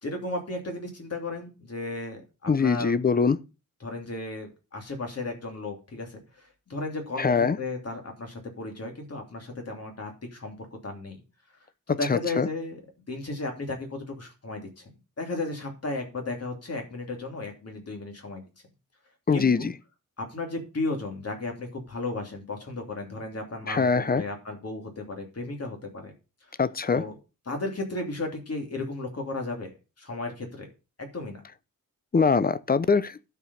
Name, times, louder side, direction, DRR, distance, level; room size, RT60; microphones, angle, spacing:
voice 1, 0.0-3.0 3.8-11.2 11.9-12.8 13.1-14.9 15.2-18.4 19.3-19.7 20.2-26.1 26.5-26.6 26.9-27.2 27.5-30.7 31.0-31.4, left 2 dB, 45° left, 2.9 m, -34 dB
voice 2, 2.5-3.4 7.2-7.6 12.1-12.5 19.3-19.7 23.7-24.2 26.6-27.0 32.1-33.2, left 5 dB, 30° left, 0.5 m, -23 dB
12.0 x 5.1 x 5.5 m
wide cardioid pair, 155°, 34 cm